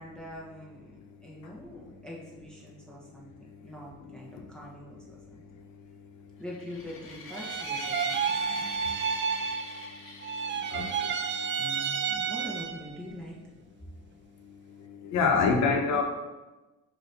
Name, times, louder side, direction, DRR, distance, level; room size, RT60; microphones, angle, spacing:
voice 1, 0.0-5.4 6.4-8.6 11.5-13.4 15.3-16.0, equal, 5° left, -5 dB, 1.4 m, -44 dB
sound 1, 6.5-11.8, left 4 dB, 45° left, 1.2 m, -44 dB
sound 2, 7.3-10.0 10.2-13.0, right 6 dB, 40° right, 0.6 m, -31 dB
voice 2, 8.5-8.9 10.7-10.9 15.0-16.0, left 5 dB, 85° left, 3 dB, 1.2 m, -26 dB
6.9 x 3.1 x 5.7 m, 1.1 s
cardioid pair, 130°, 29 cm